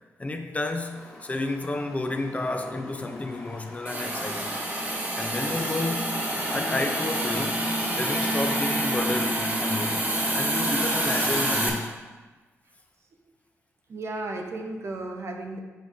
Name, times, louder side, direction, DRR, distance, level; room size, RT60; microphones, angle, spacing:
voice 1, 0.2-4.6 5.1-6.2 6.5-10.1 10.3-12.0, left 2 dB, 25° left, 5 dB, 0.5 m, -31 dB
sound 1, 0.8-10.5, left 2 dB, 80° left, 1.4 m, -45 dB
Hiss, 3.9-11.7, right 1 dB, 35° right, 1.3 m, -27 dB
Wind instrument woodwind instrument, 6.6-10.6, left 3 dB, 60° left, 0.8 m, -39 dB
voice 2, 13.9-15.6, right 2 dB, 55° right, 2 dB, 0.8 m, -34 dB
7.6 x 4.7 x 2.7 m, 1.2 s
cardioid pair, 65°, 6 cm